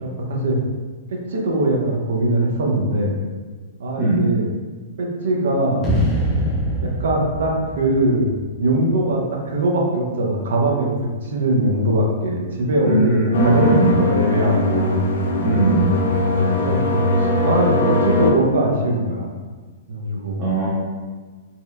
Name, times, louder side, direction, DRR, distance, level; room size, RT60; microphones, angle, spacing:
voice 1, 0.0-0.6 1.3-3.2 3.8-4.5 5.0-5.9 6.8-8.3 8.6-10.9 11.2-15.0 16.6-19.3 19.9-20.4, right 1 dB, 70° right, -1 dB, 0.5 m, -21 dB
sound 1, 5.8-9.0, equal, 15° left, 0.5 m, -24 dB
voice 2, 12.8-13.9 15.4-15.9 20.4-20.7, right 2 dB, 30° right, -9 dB, 0.6 m, -19 dB
sound 2, 13.3-18.3, left 2 dB, 70° left, 0.3 m, -20 dB
2.7 x 2.0 x 2.3 m, 1.4 s
hypercardioid pair, 115°, 0 cm